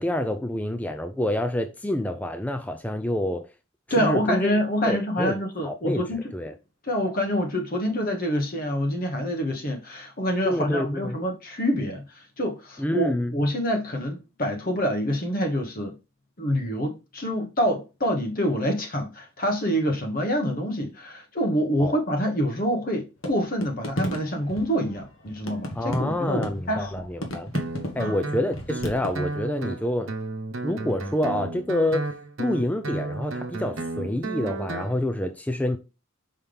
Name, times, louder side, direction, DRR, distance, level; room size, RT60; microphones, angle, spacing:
voice 1, 0.0-3.5 4.0-4.5 4.9-5.4 5.6-6.1 6.3-6.5 10.4-11.2 12.8-13.3 21.8-21.9 25.7-27.5 27.9-30.1 30.6-32.1 32.4-35.8, left 1 dB, 5° left, 0.4 m, -27 dB
voice 2, 3.9-6.2 6.8-15.9 16.4-27.1 28.0-28.1, equal, 45° left, 1.2 m, -26 dB
sound 1, 23.2-29.4, equal, 65° left, 1.5 m, -34 dB
Guitar, 27.5-34.9, right 2 dB, 65° right, 1.0 m, -33 dB
5.7 x 5.4 x 3.4 m
head